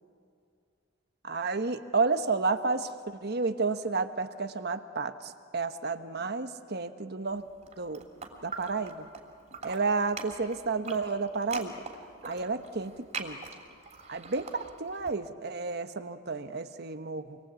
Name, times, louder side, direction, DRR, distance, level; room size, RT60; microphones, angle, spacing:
voice 1, 1.2-2.9 3.2-7.5 7.8-8.0 8.4-9.1 9.6-11.8 12.3-12.9 13.2-13.4 14.1-17.4, right 4 dB, 55° right, 9 dB, 1.1 m, -31 dB
sound 1, 7.6-9.2 9.5-15.1, right 4 dB, 35° right, 3.0 m, -42 dB
27.0 x 22.0 x 8.3 m, 2.4 s
head